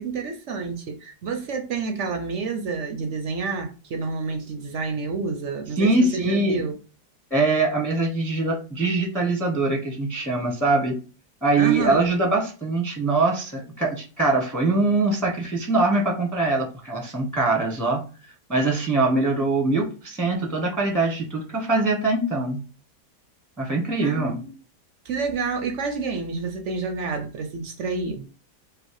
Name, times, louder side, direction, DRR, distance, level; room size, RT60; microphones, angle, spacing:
voice 1, 0.0-6.8 11.6-12.1 24.0-24.5 25.0-28.3, right 4 dB, 60° right, 0.8 m, -29 dB
voice 2, 5.8-6.6 7.3-11.0 11.4-18.0 18.5-22.6 23.6-24.4, right 3 dB, ahead, 0.8 m, -23 dB
4.9 x 2.1 x 4.7 m
omnidirectional pair, 1.8 m